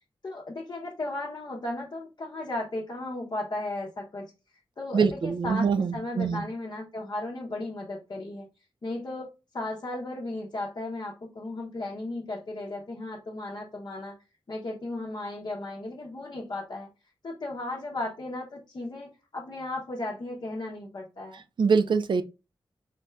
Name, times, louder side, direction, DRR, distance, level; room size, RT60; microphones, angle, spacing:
voice 1, 0.2-4.3 4.8-8.5 8.8-14.1 14.5-16.9 17.2-21.4, left 2 dB, 50° left, 0.7 m, -35 dB
voice 2, 4.9-6.4 21.6-22.2, right 5 dB, 60° right, 0.4 m, -24 dB
4.0 x 3.2 x 2.3 m
wide cardioid pair, 80°, 9 cm